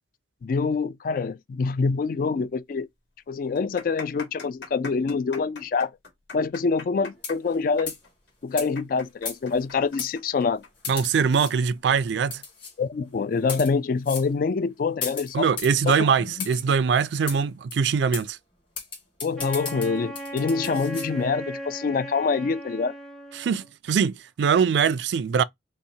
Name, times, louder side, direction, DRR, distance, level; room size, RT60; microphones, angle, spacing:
voice 1, 0.4-2.9 3.3-5.9 6.3-7.9 8.4-10.6 12.8-15.5 15.9-16.1 19.2-22.9, left 4 dB, 50° left, 0.3 m, -25 dB
sound 1, 2.4-2.5 2.7-2.8 3.4-10.7 11.0-11.1 11.8-12.1, left 4 dB, 65° left, 1.8 m, -41 dB
sound 2, 7.2-7.5 7.9-8.1 8.6-8.7 9.3-9.6 10.0-10.1 10.8-11.5 12.3-12.7 13.4-13.7 14.0-14.3 15.0-15.8 16.4-16.6 17.3-17.4 17.7-17.8 18.1-18.3 18.8-21.1, left 6 dB, 30° left, 1.8 m, -35 dB
voice 2, 10.9-12.4 15.3-18.4 23.3-25.4, right 6 dB, 70° right, 0.3 m, -22 dB
Wind instrument woodwind instrument, 19.4-23.7, right 1 dB, ahead, 0.6 m, -37 dB
5.5 x 2.1 x 2.7 m
head